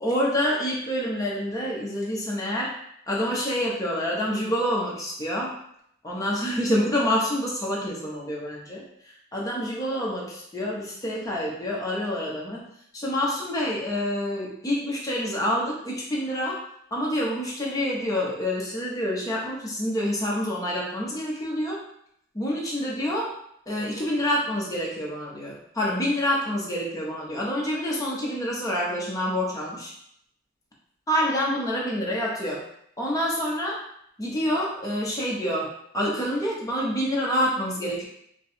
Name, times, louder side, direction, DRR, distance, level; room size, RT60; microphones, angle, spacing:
voice 1, 0.0-2.7 3.1-5.5 6.0-8.8 9.3-12.6 12.9-16.6 16.9-21.8 22.3-23.3 23.7-29.9 31.1-32.6 33.0-33.8 34.2-35.7 35.9-38.0, equal, 15° left, -4 dB, 0.6 m, -27 dB
2.7 x 2.3 x 4.1 m, 0.71 s
head